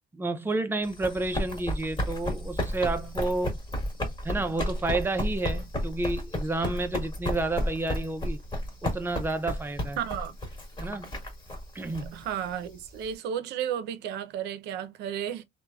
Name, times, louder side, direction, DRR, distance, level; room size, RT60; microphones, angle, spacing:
voice 1, 0.1-3.6 4.2-8.4 8.8-10.0 10.8-11.1 11.7-12.3, right 2 dB, 15° right, 0.4 m, -30 dB
Run, 0.8-13.1, left 1 dB, 25° left, 1.3 m, -33 dB
voice 2, 10.0-10.4 12.1-15.4, right 9 dB, 80° right, 0.6 m, -33 dB
3.2 x 2.2 x 2.3 m
cardioid pair, 110°, 17 cm